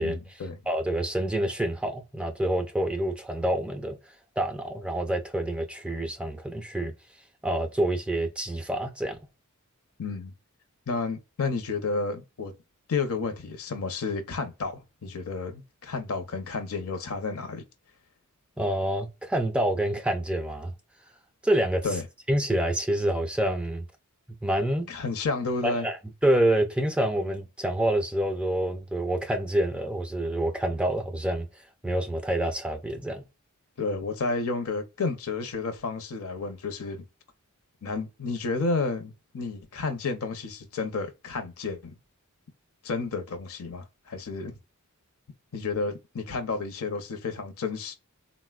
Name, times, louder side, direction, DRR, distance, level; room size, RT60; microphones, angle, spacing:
voice 1, 0.0-0.6 10.0-10.3 10.9-12.5 12.9-17.6 21.8-22.1 24.9-25.9 33.8-37.0 37.8-41.9 42.8-44.5 45.5-47.9, left 4 dB, 70° left, 0.6 m, -31 dB
voice 2, 0.7-4.0 4.4-6.9 7.4-9.2 18.6-20.7 21.4-21.9 22.3-23.9 24.4-24.9 25.6-26.0 26.2-31.5 31.8-33.2, right 1 dB, 5° right, 0.4 m, -27 dB
3.8 x 2.1 x 2.3 m
head